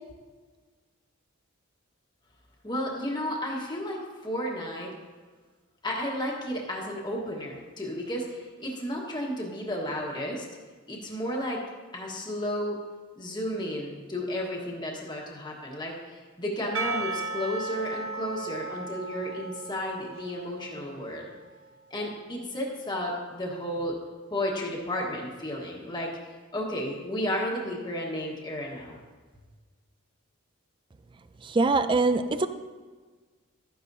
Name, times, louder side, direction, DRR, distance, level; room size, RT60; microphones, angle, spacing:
voice 1, 2.6-4.9 5.8-10.4 10.9-11.6 11.9-12.8 13.2-21.3 21.9-24.0 24.3-29.0, equal, 20° left, -3 dB, 1.3 m, -33 dB
Percussion / Church bell, 16.7-21.5, right 3 dB, 65° right, 0.7 m, -36 dB
voice 2, 31.5-32.5, right 3 dB, 25° right, 11 dB, 0.4 m, -23 dB
12.5 x 10.0 x 2.7 m, 1.4 s
head